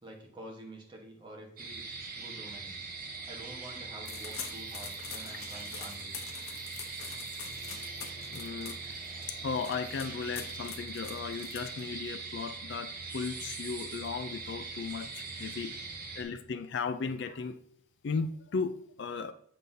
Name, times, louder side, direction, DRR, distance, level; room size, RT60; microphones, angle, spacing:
voice 1, 0.0-1.8 2.1-2.9 3.3-6.2, right 1 dB, 25° right, 0 dB, 1.2 m, -48 dB
sound 1, 1.6-16.2, right 4 dB, 45° right, 1.0 m, -41 dB
sound 2, 4.1-12.1, left 6 dB, 85° left, 0.9 m, -45 dB
voice 2, 8.3-8.8 9.4-15.7 16.2-17.6 18.0-19.3, left 5 dB, 55° left, 10 dB, 0.4 m, -36 dB
7.6 x 5.3 x 2.7 m, 0.63 s
head